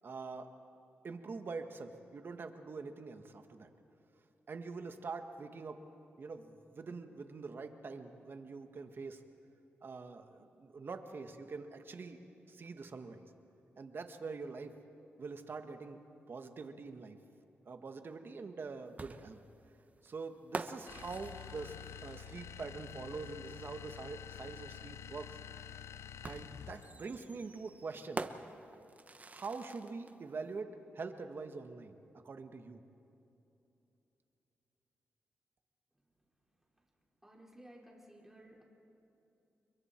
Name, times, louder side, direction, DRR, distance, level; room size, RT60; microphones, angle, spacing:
voice 1, 0.0-0.5 1.0-3.7 4.5-5.8 6.2-9.2 9.8-12.2 12.5-13.2 13.8-14.8 15.2-16.0 16.3-17.2 17.6-19.4 20.0-25.4 26.2-28.3 29.3-32.0 32.2-32.8, right 4 dB, 55° right, 7 dB, 1.6 m, -44 dB
sound 1, 19.0-22.6 24.1-24.2 26.2-30.1, right 3 dB, 35° right, 1.0 m, -46 dB
sound 2, 20.9-27.0, left 9 dB, 85° left, 0.7 m, -49 dB
voice 2, 37.2-38.6, right 1 dB, 10° right, -3 dB, 5.1 m, -56 dB
30.0 x 23.5 x 4.6 m, 2.9 s
cardioid pair, 75°, 5 cm